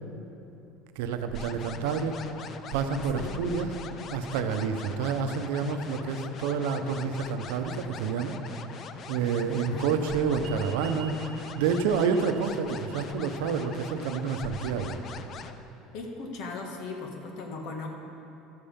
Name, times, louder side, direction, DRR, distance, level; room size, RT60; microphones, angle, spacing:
voice 1, 0.9-2.2 2.7-3.8 4.1-8.4 8.7-15.0, right 5 dB, 80° right, 7 dB, 0.7 m, -29 dB
sound 1, 1.3-15.5, left 6 dB, 45° left, 0.5 m, -42 dB
voice 2, 3.1-3.5 9.5-10.1 15.9-17.9, left 3 dB, 70° left, 2 dB, 1.5 m, -38 dB
sound 2, 10.4-15.4, right 7 dB, 55° right, 1.1 m, -51 dB
12.5 x 7.1 x 5.1 m, 2.9 s
supercardioid pair, 105°, 0 cm